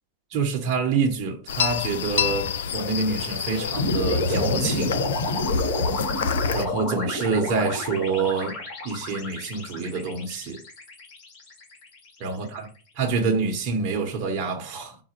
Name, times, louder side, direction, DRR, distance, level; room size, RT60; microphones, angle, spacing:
voice 1, 0.3-5.1 6.5-10.6 12.2-12.7 13.0-15.0, right 4 dB, 35° right, 0.9 m, -27 dB
sound 1, 1.5-6.7, left 7 dB, 85° left, 0.4 m, -28 dB
sound 2, 3.8-12.1, left 1 dB, 35° left, 1.8 m, -29 dB
4.8 x 2.2 x 4.5 m
supercardioid pair, 150°, 0 cm